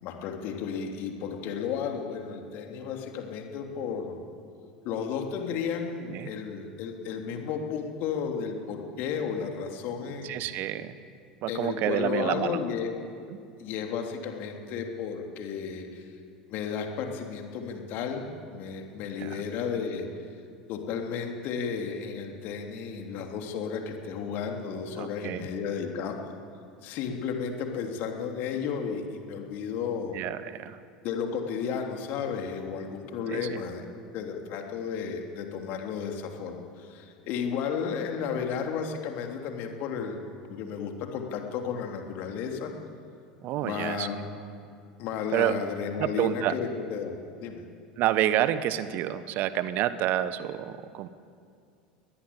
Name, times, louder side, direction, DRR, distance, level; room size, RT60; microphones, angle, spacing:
voice 1, 0.0-4.2 4.8-10.4 11.5-12.9 13.6-16.1 16.5-20.1 20.7-26.2 26.8-30.2 31.0-33.8 34.1-42.7 43.6-44.2 45.0-47.6, left 6 dB, 50° left, 3 dB, 3.2 m, -33 dB
voice 2, 10.2-10.9 11.4-12.6 19.2-19.4 24.9-25.5 30.1-30.8 33.3-33.6 43.4-44.1 45.3-45.6 46.0-46.5 48.0-51.1, right 12 dB, 45° right, 14 dB, 1.1 m, -28 dB
21.5 x 19.5 x 8.6 m, 2.4 s
figure-of-eight pair, 75°, 4 cm